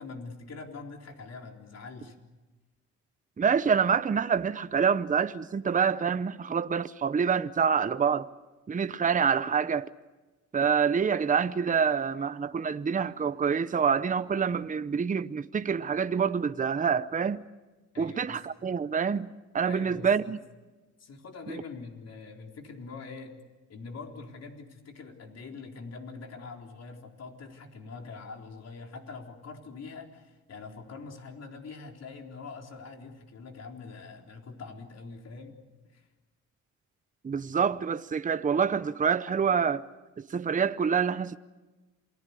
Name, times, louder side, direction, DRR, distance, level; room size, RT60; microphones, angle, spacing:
voice 1, 0.0-2.2 17.9-18.4 19.7-20.3 21.0-23.4 23.7-35.6 35.9-36.1, left 4 dB, 55° left, 4.0 m, -44 dB
voice 2, 3.4-8.3 8.7-9.9 10.5-17.4 18.0-19.3 19.5-20.4 37.2-39.8 40.3-41.4, right 6 dB, 25° right, 0.8 m, -26 dB
28.0 x 20.0 x 8.4 m
cardioid pair, 90°, 30 cm